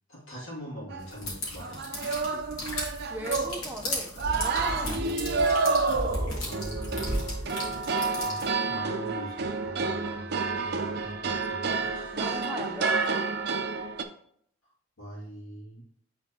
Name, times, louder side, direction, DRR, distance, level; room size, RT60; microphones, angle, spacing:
voice 1, 0.1-2.0 4.8-5.1 6.4-7.3 8.2-12.4 15.0-15.8, right 1 dB, 75° left, -5 dB, 2.3 m, -43 dB
sound 1, 0.9-1.1 1.6-3.8 4.2-14.0, right 4 dB, 50° right, 0.5 m, -29 dB
sound 2, 1.1-8.5, left 1 dB, 90° left, 2.1 m, -34 dB
voice 2, 2.0-5.2 12.1-13.3, right 1 dB, 10° right, 1 dB, 0.7 m, -40 dB
8.8 x 4.0 x 2.9 m, 0.66 s
head